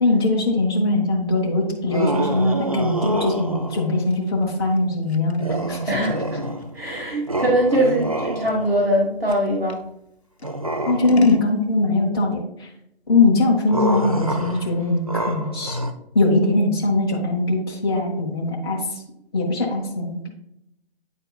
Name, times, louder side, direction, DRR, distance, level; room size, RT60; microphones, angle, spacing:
voice 1, 0.0-5.9 10.9-12.7 13.1-15.8 16.1-19.0 19.3-20.3, left 2 dB, 25° left, -4 dB, 1.2 m, -21 dB
sound 1, 1.9-4.0 5.4-6.8 7.3-8.9 10.4-11.5 13.7-15.9, right 1 dB, 35° right, 0.4 m, -27 dB
Scissors, 3.7-9.9 10.4-11.5, left 4 dB, 85° left, 0.8 m, -32 dB
voice 2, 5.9-6.4 6.7-9.8, right 1 dB, 65° right, -3 dB, 1.6 m, -21 dB
9.2 x 4.3 x 2.4 m, 0.78 s
figure-of-eight pair, 155°, 32 cm